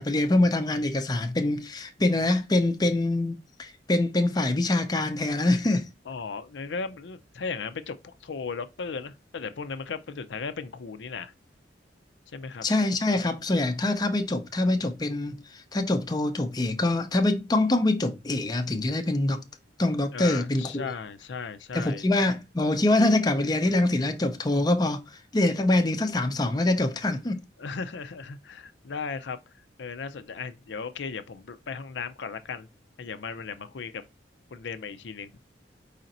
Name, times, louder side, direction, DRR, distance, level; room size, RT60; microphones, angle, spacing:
voice 1, 0.0-5.9 12.6-19.4 19.8-20.9 21.7-25.0 25.3-27.4, left 2 dB, 20° left, 0.5 m, -24 dB
voice 2, 6.1-11.3 12.3-12.7 20.1-22.0 27.6-29.4 29.8-32.7 33.0-34.0 34.5-35.3, left 5 dB, 80° left, 0.5 m, -36 dB
4.9 x 2.6 x 4.2 m
head